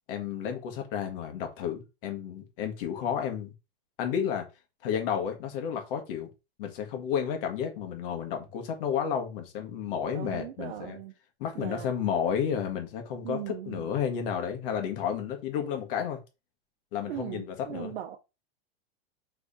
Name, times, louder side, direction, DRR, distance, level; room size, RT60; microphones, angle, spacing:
voice 1, 0.1-3.5 4.0-4.4 4.8-6.3 6.6-11.0 11.4-16.2 16.9-17.9, left 8 dB, 60° left, 1.5 m, -31 dB
voice 2, 10.1-11.1 11.5-11.9 13.2-13.9 17.1-18.2, right 12 dB, 80° right, 0.8 m, -38 dB
4.7 x 3.4 x 2.7 m
supercardioid pair, 150°, 31 cm